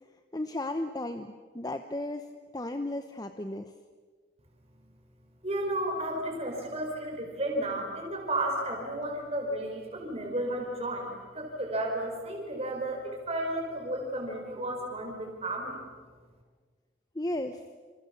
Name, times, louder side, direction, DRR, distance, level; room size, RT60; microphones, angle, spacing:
voice 1, 0.3-3.7 17.1-17.6, left 1 dB, 20° left, 7 dB, 1.0 m, -35 dB
voice 2, 5.4-15.8, right 1 dB, 35° right, 0 dB, 4.9 m, -33 dB
29.0 x 27.0 x 7.1 m, 1.5 s
head